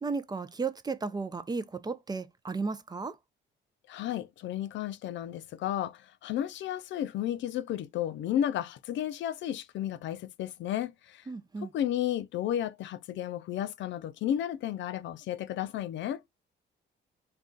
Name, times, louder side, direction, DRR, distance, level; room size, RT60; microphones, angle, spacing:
voice 1, 0.0-3.2 11.3-11.7, right 4 dB, 20° right, 0.4 m, -34 dB
voice 2, 3.9-11.3 11.7-16.2, left 11 dB, 70° left, 0.4 m, -33 dB
2.3 x 2.3 x 3.7 m
cardioid pair, 90°, 20 cm